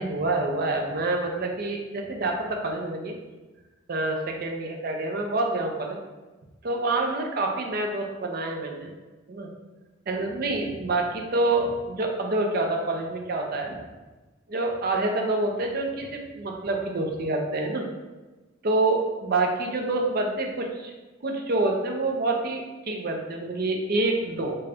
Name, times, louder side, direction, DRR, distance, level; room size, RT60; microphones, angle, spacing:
voice 1, 0.0-3.1 3.9-6.0 6.6-8.9 9.3-9.5 10.1-13.7 14.5-17.9 18.6-20.9 21.2-24.6, right 2 dB, 50° right, 2 dB, 0.5 m, -27 dB
3.7 x 2.2 x 3.4 m, 1.2 s
head